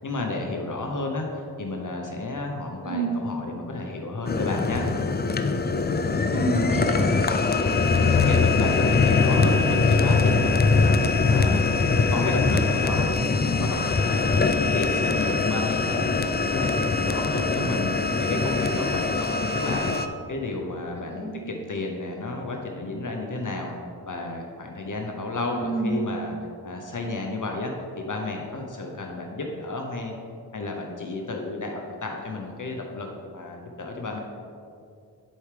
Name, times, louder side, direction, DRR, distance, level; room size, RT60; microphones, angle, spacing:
voice 1, 0.0-4.9 7.9-11.8 12.1-13.1 13.4-16.1 16.4-17.9 18.2-19.9 20.3-23.7 24.1-26.3 26.6-30.1 30.5-34.2, left 2 dB, 50° left, 1 dB, 0.9 m, -32 dB
voice 2, 2.8-3.2 6.3-7.1 21.2-21.4 25.5-26.0, right 2 dB, 15° right, -3 dB, 1.6 m, -28 dB
sound 1, 4.2-20.1, left 4 dB, 25° left, 0.4 m, -22 dB
10.5 x 4.7 x 3.4 m, 2.4 s
wide cardioid pair, 75°, 40 cm